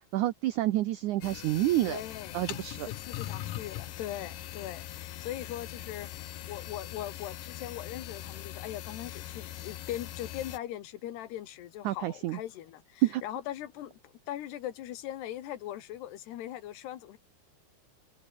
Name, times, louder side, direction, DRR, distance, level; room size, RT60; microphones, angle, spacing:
voice 1, 0.1-2.0 2.3-2.9 11.9-12.4 13.0-13.2, right 15 dB, 80° right, 1.8 m, -28 dB
sound 1, 1.2-10.6, left 13 dB, 65° left, 2.6 m, -41 dB
voice 2, 1.9-2.5 2.8-17.2, left 12 dB, 85° left, 3.7 m, -40 dB
omnidirectional pair, 4.6 m